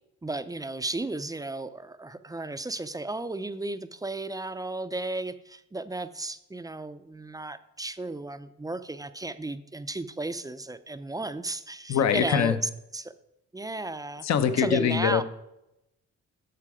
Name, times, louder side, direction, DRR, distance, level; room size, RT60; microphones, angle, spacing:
voice 1, 0.2-13.1 13.5-14.2 14.6-15.2, right 2 dB, 10° right, 12 dB, 0.5 m, -34 dB
voice 2, 11.9-12.6 14.2-15.2, left 8 dB, 60° left, 11 dB, 0.8 m, -23 dB
13.5 x 4.8 x 4.9 m, 0.88 s
cardioid pair, 90°, 30 cm